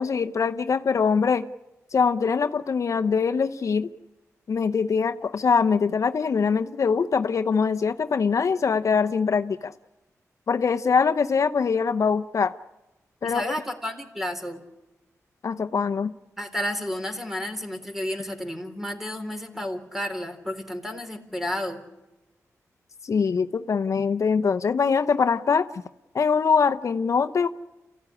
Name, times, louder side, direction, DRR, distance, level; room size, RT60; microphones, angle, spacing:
voice 1, 0.0-1.5 1.9-3.9 4.5-9.7 10.5-12.5 13.2-13.4 15.4-16.1 23.0-25.7 26.1-27.5, left 5 dB, 65° left, 10 dB, 0.8 m, -23 dB
voice 2, 13.2-14.6 16.4-21.8, left 1 dB, 5° right, 6 dB, 3.8 m, -31 dB
28.5 x 15.5 x 9.9 m, 1.0 s
cardioid pair, 75°, 6 cm